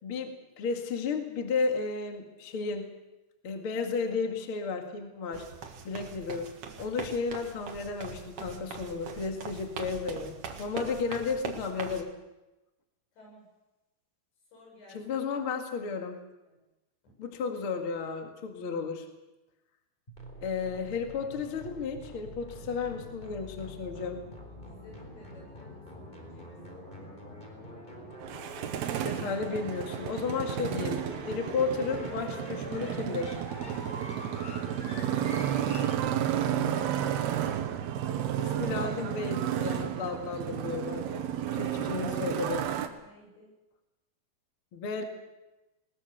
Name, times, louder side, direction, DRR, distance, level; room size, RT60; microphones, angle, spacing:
voice 1, 0.0-2.9 3.4-5.5 5.8-12.1 14.9-16.2 17.2-19.1 20.4-24.2 29.0-31.0 31.3-33.4 38.4-41.3 41.5-42.7 44.7-45.0, left 4 dB, 45° left, 3 dB, 2.0 m, -33 dB
sound 1, 5.3-12.0, right 5 dB, 55° right, 1.8 m, -42 dB
voice 2, 9.6-10.6 13.1-13.5 14.5-15.0 16.5-16.6 17.0-17.2 22.4-22.7 24.6-27.5 34.9-36.3 41.6-42.0 43.0-43.5, left 1 dB, 70° left, 0 dB, 9.2 m, -56 dB
sound 2, 20.1-36.0, equal, 10° left, 3.6 m, -44 dB
Motorcycle, 28.2-42.9, right 10 dB, 70° right, 2.9 m, -32 dB
20.5 x 20.5 x 6.7 m, 1.0 s
omnidirectional pair, 5.2 m